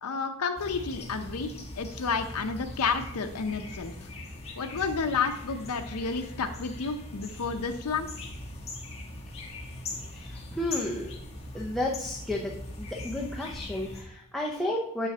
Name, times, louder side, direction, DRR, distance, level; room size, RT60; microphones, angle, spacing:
voice 1, 0.0-3.9 4.6-8.1, left 5 dB, 80° left, 5 dB, 0.6 m, -31 dB
sound 1, 0.6-14.0, left 1 dB, 30° left, 1.2 m, -41 dB
voice 2, 10.1-11.1 11.5-12.5 12.8-15.1, left 1 dB, ahead, -3 dB, 0.6 m, -32 dB
7.5 x 6.2 x 2.8 m, 0.75 s
head